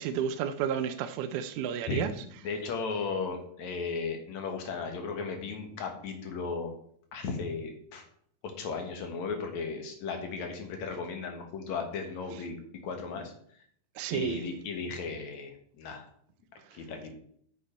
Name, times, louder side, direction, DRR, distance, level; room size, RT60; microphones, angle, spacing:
voice 1, 0.0-2.1 14.0-14.4, right 8 dB, 80° right, 2.0 m, -31 dB
voice 2, 1.8-6.7 7.1-8.0 8.6-12.6 12.8-13.3 14.1-16.0 16.7-17.1, left 4 dB, 65° left, 2.7 m, -36 dB
9.2 x 7.4 x 4.4 m
omnidirectional pair, 3.6 m